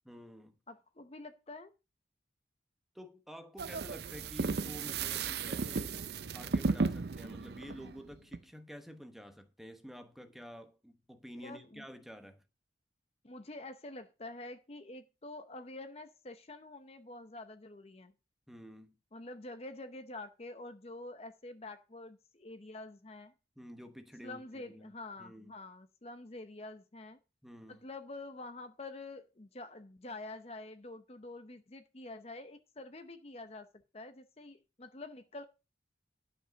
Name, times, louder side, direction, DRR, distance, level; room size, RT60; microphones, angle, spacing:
voice 1, 0.0-0.6 2.9-6.1 6.3-12.4 18.5-18.9 23.6-24.9 25.2-25.5 27.4-27.9, equal, ahead, 1.0 m, -49 dB
voice 2, 0.7-1.7 11.4-11.9 13.2-18.1 19.1-23.3 24.2-27.2 27.7-33.7 33.9-35.5, left 2 dB, 35° left, 0.8 m, -47 dB
sound 1, 3.6-8.4, right 4 dB, 60° right, 0.5 m, -35 dB
12.0 x 5.3 x 6.3 m
head